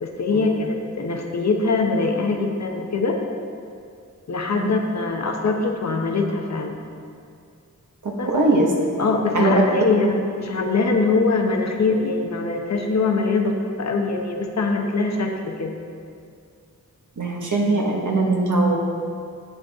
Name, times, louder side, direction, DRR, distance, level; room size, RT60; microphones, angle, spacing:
voice 1, 0.0-3.2 4.3-6.8 8.2-8.3 9.0-15.8, left 3 dB, 55° left, 2 dB, 0.9 m, -23 dB
voice 2, 8.0-8.7 9.3-9.6 17.2-18.8, right 2 dB, 65° right, -1 dB, 1.4 m, -21 dB
8.4 x 8.0 x 3.6 m, 2.3 s
cardioid pair, 50°, 33 cm